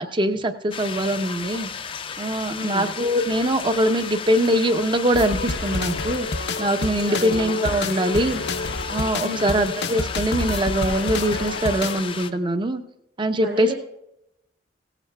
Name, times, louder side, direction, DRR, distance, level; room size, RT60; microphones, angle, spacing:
voice 1, 0.0-1.7 2.2-6.3 6.6-8.4 8.9-12.8 13.2-13.7, right 1 dB, 30° right, 9 dB, 0.7 m, -22 dB
sound 1, 0.7-12.3, left 6 dB, 30° left, 0.5 m, -34 dB
voice 2, 2.5-2.9 7.1-7.6 9.2-9.5 13.4-13.7, equal, 80° right, -4 dB, 2.1 m, -31 dB
sound 2, 5.1-12.0, left 3 dB, 70° left, 0.7 m, -29 dB
17.0 x 15.0 x 2.3 m, 0.84 s
head